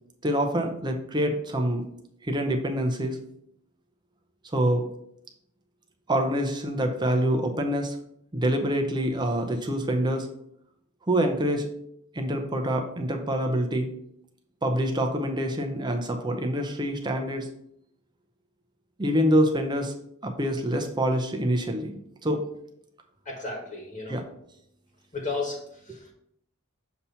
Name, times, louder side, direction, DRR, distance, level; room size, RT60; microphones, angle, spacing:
voice 1, 0.2-1.8 2.2-3.2 4.4-4.9 6.1-8.0 8.3-10.3 11.1-11.7 12.1-13.9 14.6-17.5 19.0-19.9 20.2-22.4 24.1-24.2, equal, 20° right, 4 dB, 0.6 m, -26 dB
voice 2, 23.2-24.2 25.1-25.6 25.9-26.1, left 3 dB, 35° left, -1 dB, 1.4 m, -33 dB
6.9 x 2.9 x 5.5 m, 0.74 s
head